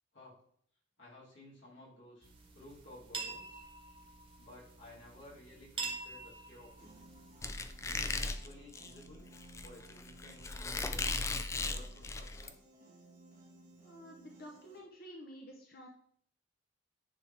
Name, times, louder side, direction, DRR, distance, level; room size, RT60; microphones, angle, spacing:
voice 1, 1.0-3.6 4.4-6.9 7.8-9.3 9.6-11.0 11.6-12.6, left 1 dB, 75° left, -6 dB, 2.8 m, -55 dB
sound 1, 2.2-8.3, right 4 dB, 25° right, 1.1 m, -46 dB
Piano, 6.8-14.8, right 2 dB, 45° right, 1.5 m, -59 dB
Squeak, 7.4-12.5, left 3 dB, 15° left, 0.3 m, -37 dB
voice 2, 13.8-15.9, equal, 50° left, 1 dB, 0.8 m, -51 dB
9.8 x 3.5 x 3.4 m, 0.62 s
head